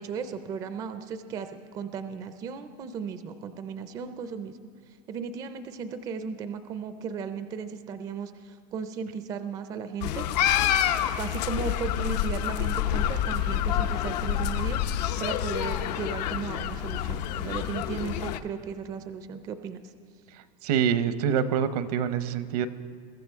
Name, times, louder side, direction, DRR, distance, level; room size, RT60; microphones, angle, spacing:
voice 1, 0.0-4.6 5.1-10.3 11.1-14.8 15.2-19.9, right 6 dB, 20° right, 10 dB, 0.4 m, -36 dB
sound 1, 10.0-18.4, left 10 dB, 85° left, 0.7 m, -27 dB
voice 2, 20.3-22.7, right 8 dB, 70° right, 12 dB, 0.8 m, -26 dB
22.5 x 14.0 x 3.5 m, 2.4 s
supercardioid pair, 175°, 20 cm